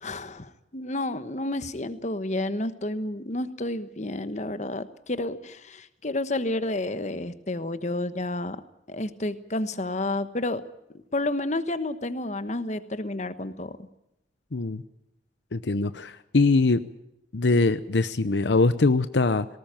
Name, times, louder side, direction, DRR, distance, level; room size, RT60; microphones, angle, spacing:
voice 1, 0.0-8.6 8.9-10.6 10.9-13.7, left 2 dB, 40° left, 12 dB, 1.2 m, -30 dB
voice 2, 14.5-14.8 15.5-16.8 17.3-19.5, left 3 dB, 75° left, 13 dB, 0.8 m, -22 dB
19.0 x 18.5 x 9.0 m, 0.83 s
head